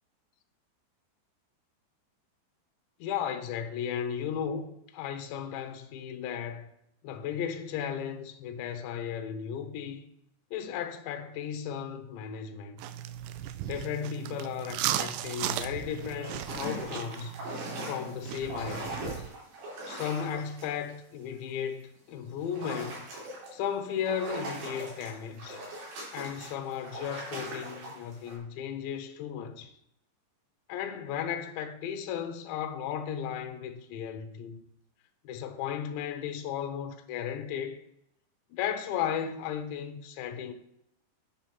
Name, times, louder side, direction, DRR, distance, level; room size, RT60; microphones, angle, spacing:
voice 1, 3.0-6.7 7.0-10.0 10.5-12.8 13.6-17.4 17.9-19.0 19.9-23.1 23.5-25.6 26.1-29.7 30.7-34.6 35.2-37.8 38.5-40.5, left 8 dB, 75° left, 3.1 m, -35 dB
sound 1, 12.8-19.3, right 12 dB, 85° right, 2.5 m, -36 dB
sound 2, 16.2-20.9 21.3-21.7 22.4-23.6 24.0-28.4, right 1 dB, 65° right, 5.6 m, -40 dB
10.5 x 5.6 x 6.0 m
omnidirectional pair, 5.4 m